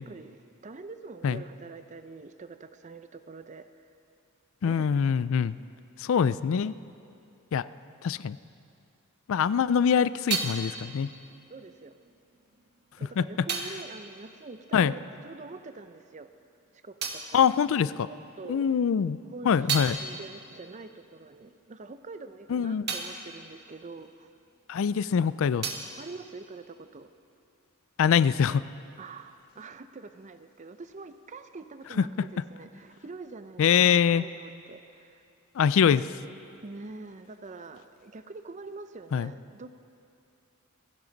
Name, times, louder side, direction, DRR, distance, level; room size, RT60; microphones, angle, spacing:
voice 1, 0.0-3.7 4.6-4.9 11.5-12.0 13.0-16.3 16.8-17.5 18.1-18.8 19.2-19.5 20.0-24.3 26.0-27.1 29.0-35.2 36.6-39.7, right 3 dB, 35° right, 11 dB, 0.6 m, -45 dB
voice 2, 4.6-5.6 6.0-6.7 7.5-7.7 8.0-8.4 9.3-11.1 13.2-13.3 14.7-14.9 17.3-18.1 18.5-19.2 19.4-20.0 22.5-22.8 24.7-25.7 28.0-28.6 32.0-32.1 33.6-34.3 35.5-36.1 39.1-39.3, left 7 dB, 65° left, 16 dB, 0.4 m, -24 dB
sound 1, 9.6-15.5 15.7-18.4 18.8-24.9 25.1-27.2, right 5 dB, 50° right, 1.3 m, -38 dB
28.0 x 11.0 x 4.0 m, 2.5 s
head